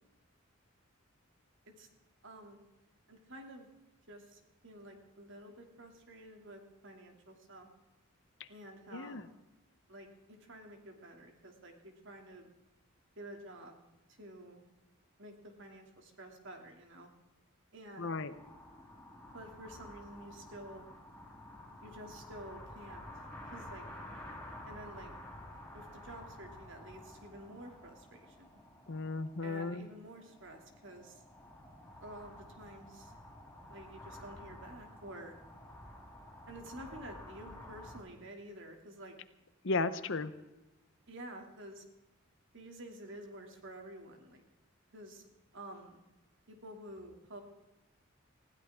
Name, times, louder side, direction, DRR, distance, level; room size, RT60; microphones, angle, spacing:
voice 1, 2.2-2.6 3.1-3.7 4.1-7.7 8.5-9.4 9.9-12.5 13.2-13.8 14.2-14.6 15.2-17.1 17.7-18.2 19.3-20.8 21.8-23.1 23.5-23.9 24.7-25.1 25.7-28.6 29.4-31.2 32.0-33.1 33.7-35.4 36.5-39.1 41.1-41.8 42.5-44.4 44.9-45.2 45.5-46.0 46.5-47.4, right 1 dB, 65° right, 3 dB, 2.7 m, -50 dB
voice 2, 8.9-9.2 18.0-18.3 28.9-29.9 39.6-40.3, left 3 dB, 65° left, 12 dB, 0.9 m, -35 dB
sound 1, 18.3-38.0, left 1 dB, 5° left, 4.1 m, -51 dB
20.0 x 16.0 x 3.7 m, 1.0 s
head